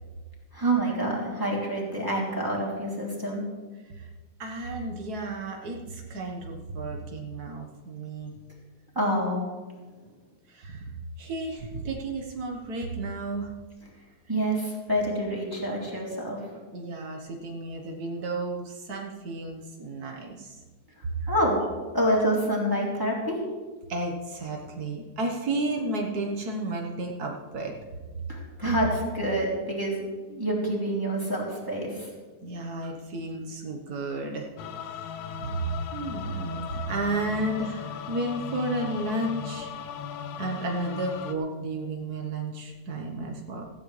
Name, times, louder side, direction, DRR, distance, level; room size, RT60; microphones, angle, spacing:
voice 1, 0.5-3.4 8.9-9.4 14.3-16.4 21.3-21.6 21.9-23.4 28.3-32.1, right 1 dB, 5° right, -4 dB, 2.8 m, -27 dB
voice 2, 4.4-8.3 10.5-10.9 11.2-13.5 16.7-20.6 21.0-21.3 23.9-27.8 32.4-34.5 34.9-35.1 35.4-39.7 40.4-43.6, right 2 dB, 80° right, 1 dB, 0.8 m, -32 dB
sound 1, 34.6-41.3, left 7 dB, 75° left, 1.5 m, -37 dB
17.0 x 14.5 x 3.3 m, 1.3 s
omnidirectional pair, 3.7 m